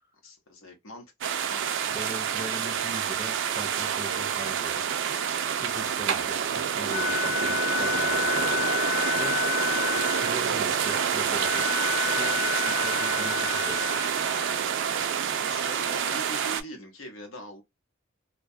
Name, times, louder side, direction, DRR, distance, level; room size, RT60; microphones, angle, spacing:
voice 1, 0.2-1.7 15.3-17.6, equal, 90° left, 0.9 m, -43 dB
sound 1, 1.2-16.6, right 8 dB, 65° right, 0.3 m, -27 dB
voice 2, 1.9-4.9 5.5-9.4 10.0-11.7 12.2-13.9, right 1 dB, 15° right, 0.5 m, -41 dB
Wind instrument woodwind instrument, 6.9-14.6, left 10 dB, 55° left, 0.3 m, -31 dB
2.2 x 2.1 x 2.6 m
head